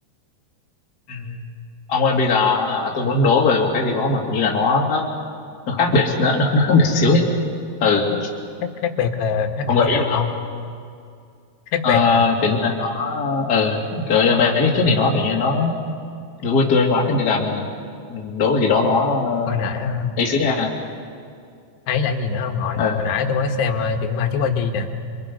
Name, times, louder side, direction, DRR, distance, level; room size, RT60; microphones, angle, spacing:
voice 1, 1.9-5.1 5.7-7.2 7.8-8.1 9.7-10.3 11.8-15.7 16.4-17.7 18.1-19.5 20.2-20.7 22.8-23.0, left 4 dB, 25° left, -1 dB, 2.4 m, -19 dB
voice 2, 8.6-10.3 11.7-12.2 14.8-14.9 19.5-20.2 21.9-24.9, left 6 dB, 70° left, 4 dB, 3.3 m, -23 dB
29.5 x 24.5 x 5.5 m, 2.3 s
omnidirectional pair, 5.2 m